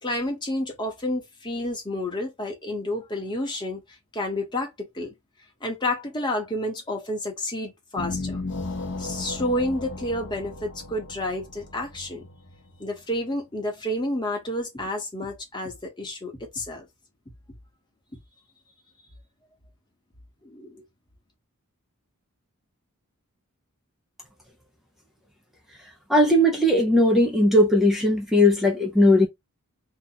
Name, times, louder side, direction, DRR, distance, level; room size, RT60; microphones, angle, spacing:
voice 1, 0.0-3.8 4.1-5.1 5.6-8.4 9.0-12.3 12.8-16.9 20.4-20.8, left 1 dB, 20° left, 1.1 m, -30 dB
sound 1, 8.0-13.2, left 2 dB, 55° left, 0.8 m, -35 dB
voice 2, 26.1-29.3, left 1 dB, ahead, 0.7 m, -18 dB
2.9 x 2.5 x 3.9 m
head